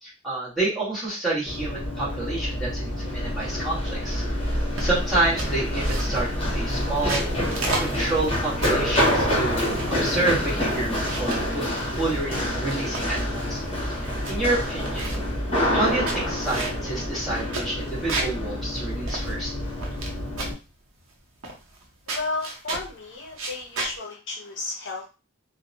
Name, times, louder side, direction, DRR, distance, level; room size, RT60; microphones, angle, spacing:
voice 1, 0.0-4.2 4.8-7.3 7.8-13.6 13.9-15.1 15.7-19.5, right 2 dB, ahead, -7 dB, 1.1 m, -28 dB
Run, 1.5-20.5, equal, 30° left, 0.9 m, -27 dB
sound 1, 4.8-5.1 5.4-6.3 6.9-8.9 9.4-10.3 10.7-11.5 12.1-13.2 13.6-13.7 13.9-14.3 14.6-15.3 15.8-18.4 18.7-18.8 19.1-20.1 20.4-20.7 21.4-21.8 22.1-22.9 23.3-23.9, right 3 dB, 90° right, 0.7 m, -33 dB
voice 2, 22.1-25.1, left 3 dB, 60° left, 1 dB, 0.6 m, -33 dB
2.7 x 2.0 x 2.5 m, 0.30 s
head